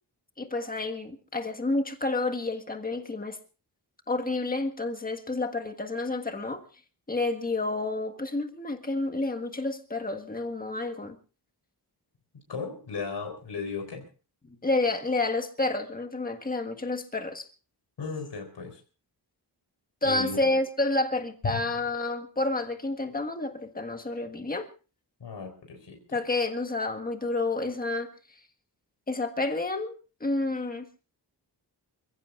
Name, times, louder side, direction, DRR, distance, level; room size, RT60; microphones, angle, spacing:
voice 1, 0.4-3.4 4.1-6.6 7.1-11.2 14.4-17.4 20.0-24.7 26.1-28.1 29.1-30.9, left 2 dB, 20° left, 1.6 m, -29 dB
voice 2, 12.3-14.0 18.0-18.8 20.0-20.4 21.4-21.6 25.2-26.0, left 5 dB, 75° left, 4.1 m, -35 dB
28.5 x 15.5 x 2.5 m
wide cardioid pair, 160°, 42 cm